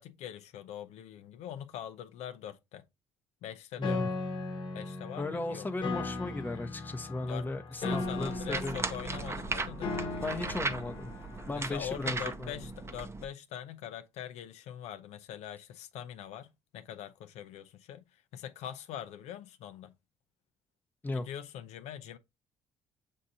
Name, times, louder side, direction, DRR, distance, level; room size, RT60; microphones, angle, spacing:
voice 1, 0.0-2.8 3.4-4.1 4.7-5.7 7.2-7.5 7.7-10.1 10.4-10.9 11.5-19.9 21.1-22.2, left 10 dB, 80° left, 0.5 m, -43 dB
Piano, 3.8-11.8, left 3 dB, 45° left, 1.1 m, -38 dB
voice 2, 3.8-4.1 5.2-8.8 10.2-11.1 11.5-12.6 21.0-21.3, left 2 dB, 15° left, 0.8 m, -36 dB
sound 1, 7.9-13.2, right 3 dB, 25° right, 0.6 m, -37 dB
7.3 x 2.6 x 2.7 m
cardioid pair, 85°, 11 cm